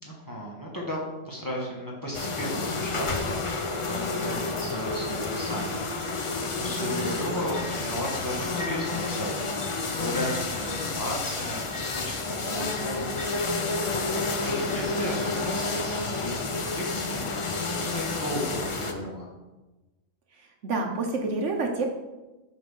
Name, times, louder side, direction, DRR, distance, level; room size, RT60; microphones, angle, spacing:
voice 1, 0.0-1.0 1.2-19.3, equal, 15° left, -3 dB, 1.2 m, -35 dB
sound 1, 2.1-18.9, left 3 dB, 55° left, 0.3 m, -30 dB
voice 2, 20.4-21.8, right 3 dB, 65° right, 2 dB, 1.1 m, -28 dB
8.2 x 3.3 x 5.4 m, 1.1 s
omnidirectional pair, 1.4 m